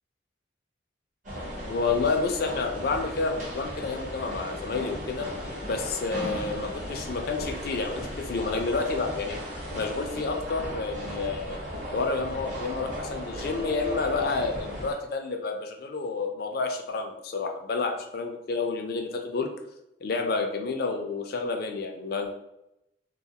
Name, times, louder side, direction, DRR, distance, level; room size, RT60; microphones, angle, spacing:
sound 1, 1.2-14.9, equal, 40° right, 0.7 m, -36 dB
voice 1, 1.7-5.3 5.6-9.4 9.7-11.6 11.9-19.5 20.0-22.3, left 4 dB, 50° left, 4 dB, 0.3 m, -29 dB
2.3 x 2.3 x 2.7 m, 0.86 s
head